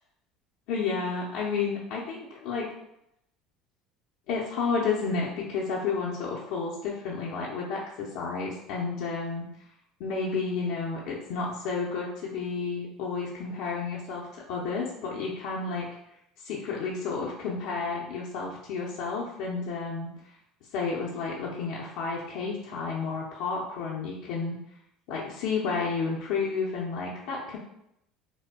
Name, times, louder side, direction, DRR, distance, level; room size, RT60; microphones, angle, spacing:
voice 1, 0.7-2.7 4.3-9.5 10.0-15.9 16.4-20.1 20.7-24.6 25.1-27.6, left 4 dB, 75° left, -4 dB, 0.6 m, -31 dB
4.9 x 2.1 x 2.2 m, 0.79 s
supercardioid pair, 120°, 0 cm